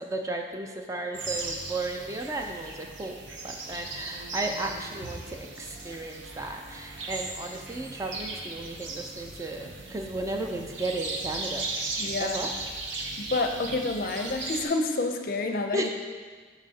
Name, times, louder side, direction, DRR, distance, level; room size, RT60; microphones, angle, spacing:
voice 1, 0.0-11.7 12.2-12.5 15.7-15.9, right 2 dB, 15° right, 3 dB, 0.3 m, -34 dB
sound 1, 1.1-14.7, right 2 dB, 80° right, 0.8 m, -37 dB
voice 2, 12.0-12.4 13.2-15.9, left 3 dB, 50° left, 5 dB, 0.5 m, -28 dB
11.5 x 4.0 x 2.8 m, 1.5 s
head